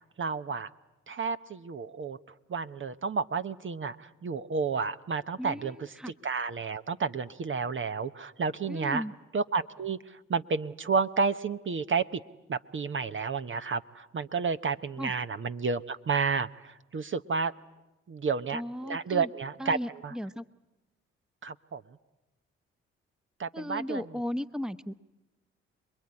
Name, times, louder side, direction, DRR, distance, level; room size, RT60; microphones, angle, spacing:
voice 1, 0.2-0.7 1.1-2.2 2.5-5.8 6.2-9.0 9.3-12.2 12.5-17.5 18.1-19.8 20.0-20.1 21.4-21.8 23.4-24.0, right 5 dB, 40° right, 11 dB, 0.9 m, -31 dB
voice 2, 5.4-6.1 8.7-9.1 15.0-15.1 18.5-19.3 19.6-20.4 23.5-24.9, left 1 dB, ahead, 13 dB, 1.0 m, -36 dB
26.5 x 21.5 x 9.8 m, 1.0 s
hypercardioid pair, 45°, 29 cm